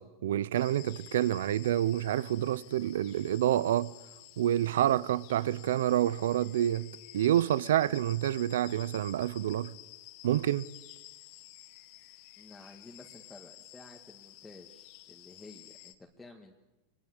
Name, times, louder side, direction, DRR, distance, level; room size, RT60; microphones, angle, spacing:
voice 1, 0.0-3.9 4.4-9.7 10.2-10.7, right 12 dB, 85° right, 0.7 m, -28 dB
sound 1, 0.5-15.9, left 16 dB, 55° left, 1.7 m, -52 dB
voice 2, 12.4-16.5, left 3 dB, 10° left, 2.0 m, -52 dB
24.5 x 21.0 x 8.1 m
supercardioid pair, 140°, 0 cm